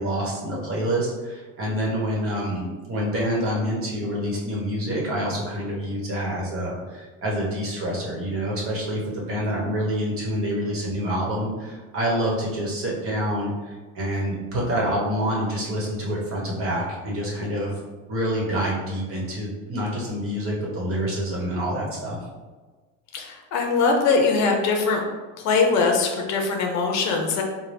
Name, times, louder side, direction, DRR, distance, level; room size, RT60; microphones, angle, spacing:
voice 1, 0.0-13.5 13.9-17.7 18.1-22.2, equal, 40° right, -4 dB, 1.1 m, -27 dB
voice 2, 23.1-25.1 25.4-27.4, left 4 dB, 55° left, 2 dB, 0.6 m, -22 dB
4.0 x 2.2 x 3.3 m, 1.3 s
cardioid pair, 135°, 34 cm